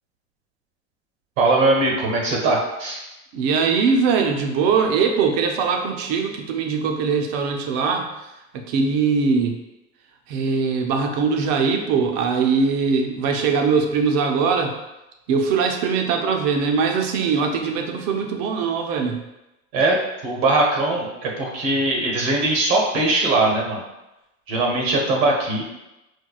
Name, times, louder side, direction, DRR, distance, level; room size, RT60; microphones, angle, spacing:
voice 1, 1.4-3.0 19.7-20.0 20.2-23.8 24.5-25.6, right 2 dB, 75° right, 0 dB, 1.1 m, -20 dB
voice 2, 3.3-8.1 8.5-9.6 10.3-14.7 15.3-19.2, right 5 dB, 60° right, 3 dB, 0.6 m, -21 dB
4.5 x 2.2 x 2.3 m, 0.96 s
supercardioid pair, 130°, 40 cm